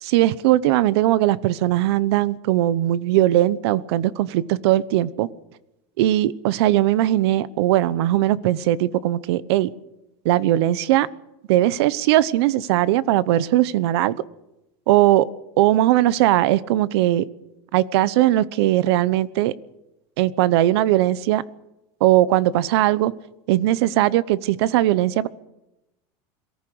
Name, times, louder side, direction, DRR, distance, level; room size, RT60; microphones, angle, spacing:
voice 1, 0.0-5.3 6.0-9.7 10.2-11.1 11.5-14.2 14.9-15.3 15.6-17.2 17.7-19.5 20.2-21.4 22.0-23.1 23.5-25.3, right 14 dB, 80° right, 19 dB, 0.9 m, -19 dB
23.0 x 14.5 x 7.9 m, 0.93 s
supercardioid pair, 155°, 13 cm